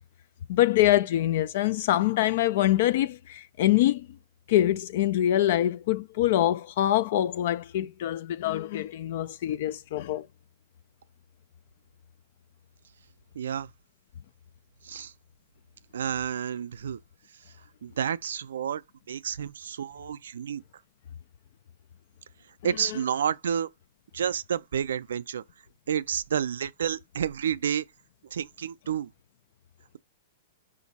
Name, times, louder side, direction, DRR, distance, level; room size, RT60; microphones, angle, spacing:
voice 1, 0.5-4.1 4.5-10.3 22.8-23.0, left 13 dB, 60° left, 0.3 m, -24 dB
voice 2, 13.4-13.7 14.8-15.1 15.9-17.0 17.8-18.8 19.1-20.6 22.6-23.7 24.1-25.4 25.9-27.8 28.3-29.1, right 8 dB, 85° right, 0.4 m, -30 dB
5.1 x 2.6 x 4.0 m
hypercardioid pair, 140°, 0 cm